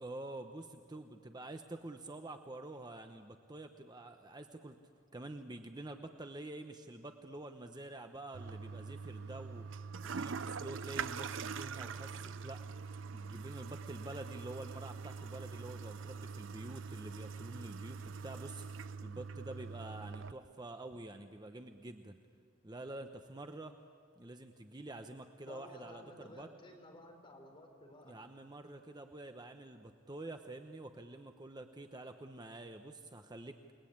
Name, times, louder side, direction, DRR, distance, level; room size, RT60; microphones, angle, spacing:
voice 1, 0.0-4.8 5.1-9.6 10.0-12.7 13.1-18.7 19.0-22.2 22.6-23.8 24.2-26.5 28.0-33.6, right 2 dB, 20° right, 6 dB, 0.9 m, -48 dB
Toilet flush, 8.3-20.3, right 5 dB, 70° right, 0.6 m, -44 dB
voice 2, 25.5-28.2, left 1 dB, 25° left, 2 dB, 4.4 m, -54 dB
29.5 x 20.5 x 8.7 m, 2.1 s
head